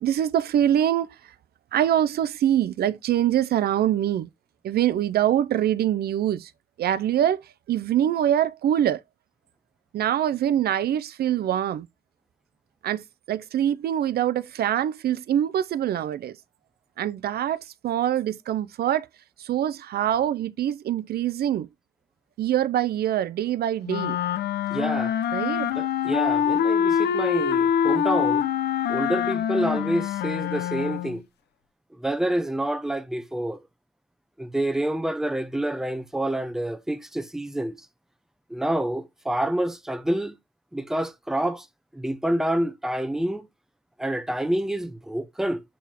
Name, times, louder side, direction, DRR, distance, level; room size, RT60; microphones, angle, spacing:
voice 1, 0.0-1.1 1.7-4.3 4.6-6.5 6.8-7.4 7.7-9.0 9.9-11.9 12.8-16.4 17.0-19.1 19.4-21.7 22.4-24.2 25.3-25.7, right 11 dB, 70° right, 0.5 m, -24 dB
sound 1, 23.9-31.2, left 8 dB, 90° left, 0.8 m, -25 dB
voice 2, 24.7-25.2 25.8-28.4 28.9-31.2 32.0-33.6 34.4-37.8 38.5-40.3 40.7-41.7 41.9-43.5 44.0-45.6, right 1 dB, 5° right, 0.7 m, -27 dB
7.4 x 4.6 x 3.5 m
wide cardioid pair, 160°, 17 cm